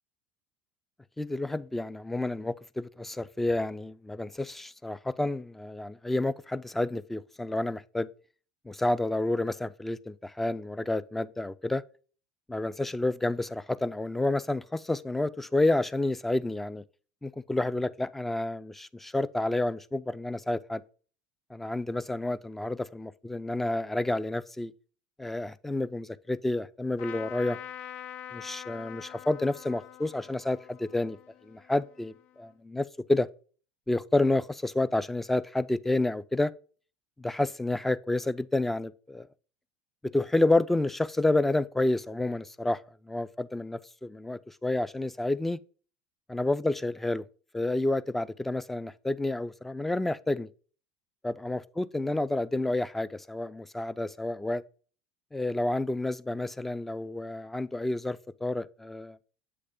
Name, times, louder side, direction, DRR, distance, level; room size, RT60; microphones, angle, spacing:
voice 1, 1.2-8.1 8.7-11.8 12.5-16.8 17.2-20.8 21.5-24.7 25.2-27.6 28.3-31.2 31.4-33.3 33.9-36.5 37.2-39.3 40.0-45.6 46.3-47.2 47.5-50.5 51.2-54.6 55.3-59.2, left 2 dB, 10° left, 0.4 m, -29 dB
Trumpet, 27.0-32.5, left 11 dB, 70° left, 0.5 m, -45 dB
7.8 x 3.3 x 5.0 m
hypercardioid pair, 95°, 3 cm